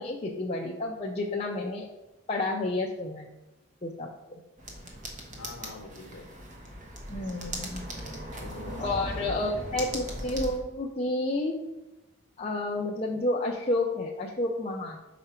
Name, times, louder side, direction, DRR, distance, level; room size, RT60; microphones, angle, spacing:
voice 1, 0.0-1.9 2.3-3.3 3.8-4.4 7.1-7.9 8.3-8.4 8.8-11.7 12.4-15.0, left 2 dB, 30° left, -1 dB, 0.5 m, -30 dB
sound 1, 4.6-10.6, right 1 dB, 35° right, 1.0 m, -38 dB
voice 2, 5.4-6.3 8.4-10.4, left 3 dB, 70° left, 1 dB, 0.8 m, -44 dB
5.8 x 5.0 x 4.3 m, 1.0 s
head